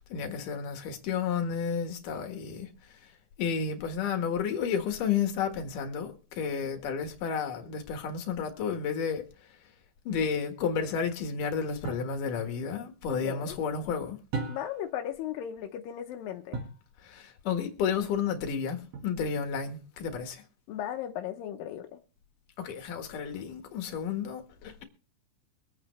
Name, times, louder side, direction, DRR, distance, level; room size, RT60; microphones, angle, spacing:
voice 1, 0.1-2.7 3.4-9.2 10.1-14.2 17.0-20.4 22.6-24.8, left 6 dB, 60° left, 2.7 m, -31 dB
sound 1, 11.8-12.2 14.3-14.9 16.5-16.9 18.9-19.5, right 4 dB, 45° right, 2.5 m, -37 dB
voice 2, 13.2-13.6 14.5-16.6 20.7-22.0, left 10 dB, 75° left, 2.1 m, -36 dB
24.0 x 8.8 x 3.2 m
omnidirectional pair, 5.1 m